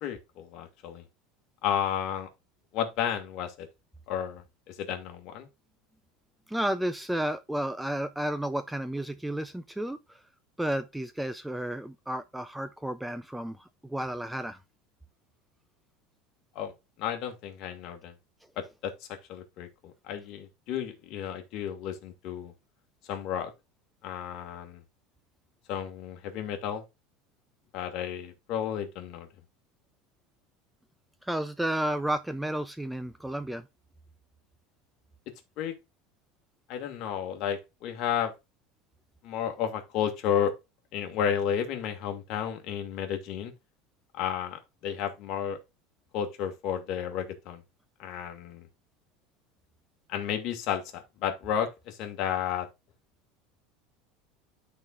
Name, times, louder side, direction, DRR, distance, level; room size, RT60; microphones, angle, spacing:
voice 1, 0.0-1.0 1.6-2.3 2.7-3.7 4.1-5.5 16.6-16.7 17.0-18.1 18.6-22.5 23.1-23.5 24.0-24.8 25.7-26.8 27.7-29.3 35.6-35.8 36.7-38.3 39.2-40.5 40.9-43.5 44.1-45.6 46.1-47.6 48.0-48.7 50.1-52.7, left 9 dB, 50° left, 1.8 m, -32 dB
voice 2, 6.5-10.2 10.6-14.6 31.2-33.6, right 1 dB, 5° right, 0.3 m, -32 dB
12.0 x 4.3 x 2.4 m
supercardioid pair, 150°, 0 cm